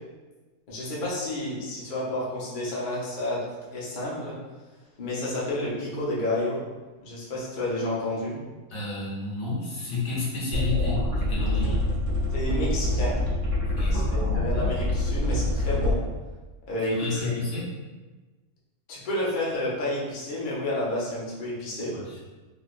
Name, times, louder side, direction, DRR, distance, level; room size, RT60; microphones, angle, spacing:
voice 1, 0.7-4.4 5.0-6.6 7.0-8.4 12.3-13.2 13.9-16.0 16.7-17.4 18.9-21.9, left 1 dB, 45° left, -6 dB, 0.8 m, -30 dB
voice 2, 8.7-11.8 13.6-14.0 16.9-17.7 21.9-22.2, left 3 dB, 75° left, -7 dB, 1.4 m, -31 dB
sound 1, 10.5-15.9, left 1 dB, 65° right, 1.2 m, -25 dB
3.3 x 2.7 x 2.4 m, 1.2 s
omnidirectional pair, 1.4 m